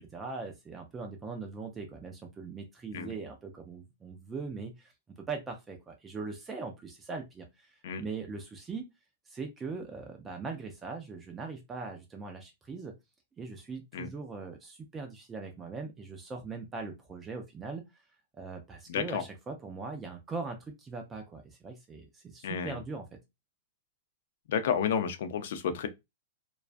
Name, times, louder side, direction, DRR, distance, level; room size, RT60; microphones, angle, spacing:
voice 1, 0.0-4.9 5.2-8.9 9.3-12.9 13.4-18.0 18.4-23.2, right 4 dB, 10° right, 0.3 m, -40 dB
voice 2, 18.9-19.2 22.4-22.8 24.5-25.9, left 7 dB, 60° left, 0.4 m, -31 dB
2.3 x 2.2 x 2.4 m
supercardioid pair, 160°, 0 cm